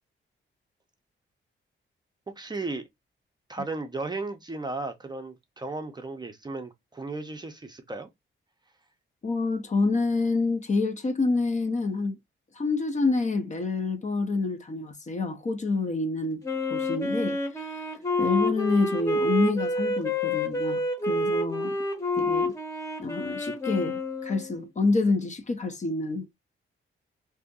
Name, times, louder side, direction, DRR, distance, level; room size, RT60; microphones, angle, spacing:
voice 1, 2.4-2.8 3.5-8.1, right 3 dB, 20° right, 0.6 m, -35 dB
voice 2, 9.2-12.2 12.6-16.4 16.7-17.8 18.2-21.8 22.2-22.5 23.0-26.3, left 3 dB, 35° left, 0.6 m, -27 dB
Wind instrument woodwind instrument, 16.4-24.6, left 2 dB, 15° left, 0.9 m, -28 dB
2.7 x 2.5 x 3.6 m
wide cardioid pair, 130°, 21 cm